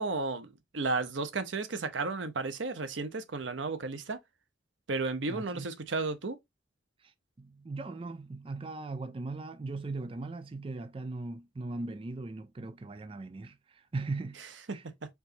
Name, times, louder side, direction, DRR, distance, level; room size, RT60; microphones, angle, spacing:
voice 1, 0.0-4.2 4.9-6.4 14.7-14.8, right 3 dB, 90° right, 0.8 m, -33 dB
voice 2, 5.3-5.7 7.0-14.4 14.7-14.8, right 3 dB, 30° right, 0.4 m, -39 dB
4.6 x 4.0 x 2.7 m
head